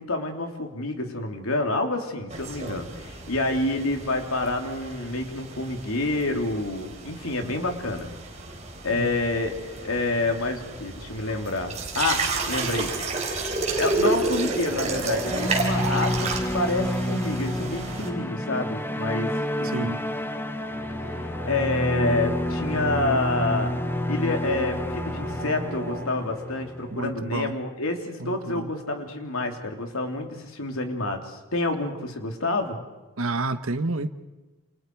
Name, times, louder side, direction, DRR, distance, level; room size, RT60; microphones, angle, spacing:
voice 1, 0.0-8.1 8.8-12.9 13.8-19.3 19.6-19.9 21.1-21.2 21.4-23.7 24.1-32.8, left 2 dB, 90° left, 4 dB, 3.2 m, -28 dB
sound 1, 2.3-18.1, right 3 dB, 30° right, 3.9 m, -31 dB
sound 2, 14.7-27.2, left 1 dB, 10° left, 0.8 m, -29 dB
sound 3, 16.5-26.1, right 2 dB, 55° right, 4.6 m, -42 dB
voice 2, 19.6-20.0 26.9-27.6 28.2-28.7 33.2-34.1, right 2 dB, 85° right, 10 dB, 1.2 m, -29 dB
28.5 x 28.0 x 4.8 m, 1.2 s
head